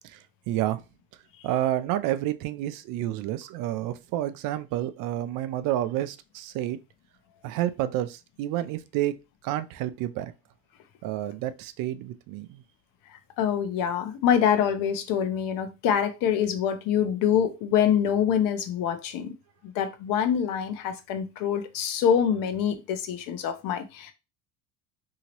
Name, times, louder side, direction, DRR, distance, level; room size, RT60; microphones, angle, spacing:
voice 1, 0.5-0.8 1.4-6.8 7.4-9.1 9.4-10.3 11.0-12.6, right 13 dB, 60° right, 0.5 m, -29 dB
voice 2, 13.4-19.3 19.7-24.1, left 8 dB, 60° left, 0.7 m, -25 dB
2.8 x 2.8 x 2.9 m
supercardioid pair, 105°, 37 cm